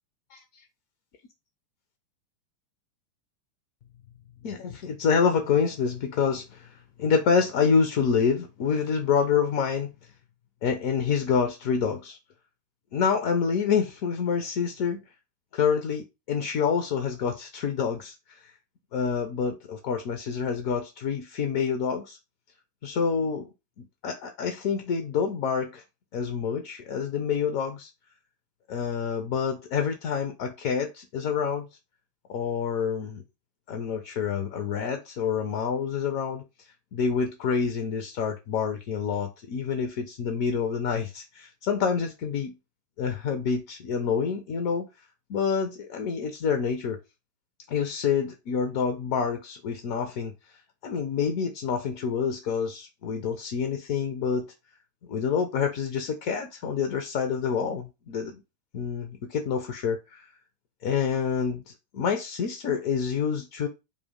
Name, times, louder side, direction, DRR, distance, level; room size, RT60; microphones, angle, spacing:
voice 1, 4.4-9.9 10.6-12.2 12.9-15.0 15.5-18.5 18.9-22.2 22.8-23.5 23.8-25.8 26.1-27.9 28.7-31.7 32.3-33.2 33.7-36.4 36.9-42.5 43.0-44.9 45.3-47.0 47.7-50.3 50.8-54.5 55.1-58.4 58.7-60.3 60.8-63.7, left 6 dB, 50° left, 0.4 m, -27 dB
2.5 x 2.1 x 3.7 m
figure-of-eight pair, 90°, 0 cm